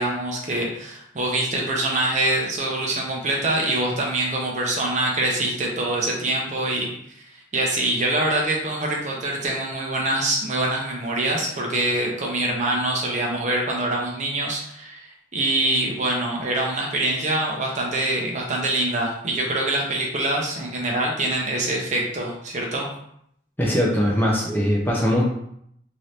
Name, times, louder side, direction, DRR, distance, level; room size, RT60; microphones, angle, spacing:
voice 1, 0.0-6.9 7.2-7.3 7.5-22.9, right 2 dB, 40° right, -1 dB, 0.7 m, -24 dB
voice 2, 23.6-25.2, equal, 10° left, -4 dB, 0.5 m, -21 dB
2.8 x 2.6 x 3.2 m, 0.71 s
head